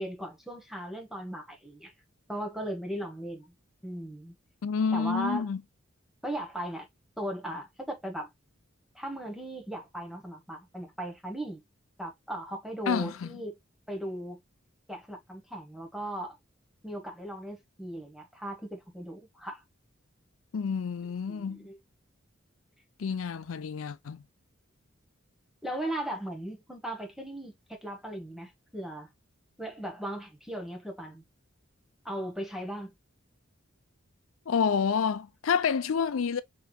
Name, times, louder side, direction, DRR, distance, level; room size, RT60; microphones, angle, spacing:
voice 1, 0.0-1.9 2.3-3.5 3.8-4.3 4.9-5.5 6.2-6.9 7.2-8.3 8.9-11.6 12.0-13.6 13.9-14.4 14.9-16.4 16.8-19.6 21.3-21.8 25.6-29.1 29.6-31.2 32.0-32.9, right 1 dB, ahead, 1.1 m, -37 dB
voice 2, 4.6-5.6 12.9-13.3 20.5-21.6 23.0-24.2 34.5-36.4, left 6 dB, 85° left, 0.5 m, -28 dB
5.7 x 3.0 x 2.2 m
head